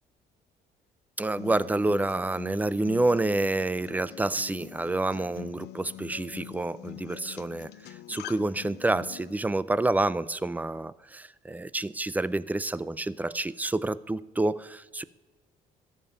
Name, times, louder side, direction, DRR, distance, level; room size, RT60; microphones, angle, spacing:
voice 1, 1.2-15.0, right 2 dB, 10° right, 18 dB, 0.4 m, -28 dB
Acoustic guitar, 1.4-9.4, left 16 dB, 80° left, 0.5 m, -45 dB
14.0 x 5.6 x 9.4 m, 1.2 s
cardioid pair, 110°, 17 cm